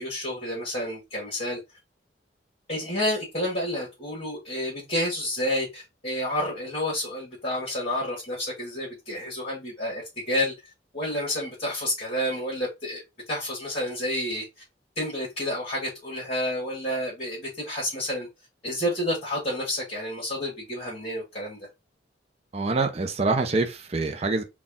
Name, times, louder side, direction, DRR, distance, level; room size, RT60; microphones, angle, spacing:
voice 1, 0.0-1.6 2.7-10.5 10.9-13.0 13.3-14.4 15.0-18.3 18.6-21.6, left 1 dB, 35° left, 1.5 m, -30 dB
voice 2, 22.5-24.4, right 3 dB, 35° right, 0.6 m, -25 dB
4.1 x 2.3 x 3.6 m
head